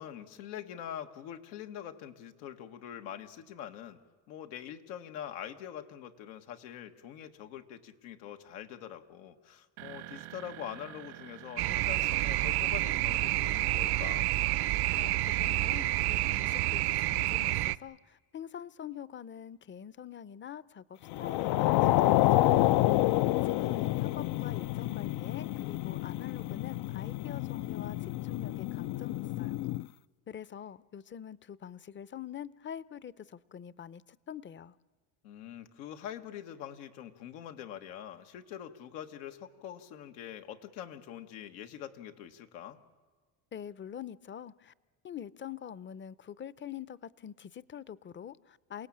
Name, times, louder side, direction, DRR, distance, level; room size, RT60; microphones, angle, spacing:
voice 1, 0.0-4.0 4.3-14.3 23.1-23.7 35.2-42.8, left 10 dB, 90° left, 1.7 m, -44 dB
sound 1, 9.8-17.6, right 16 dB, 90° right, 1.5 m, -52 dB
sound 2, 11.6-17.8, right 16 dB, 60° right, 0.7 m, -29 dB
voice 2, 15.0-22.7 23.4-29.6 30.3-34.7 43.5-44.7 45.0-48.9, left 9 dB, 25° left, 0.7 m, -45 dB
sound 3, 21.1-29.9, left 16 dB, 60° left, 0.6 m, -28 dB
28.0 x 18.0 x 8.7 m
supercardioid pair, 95°, 44 cm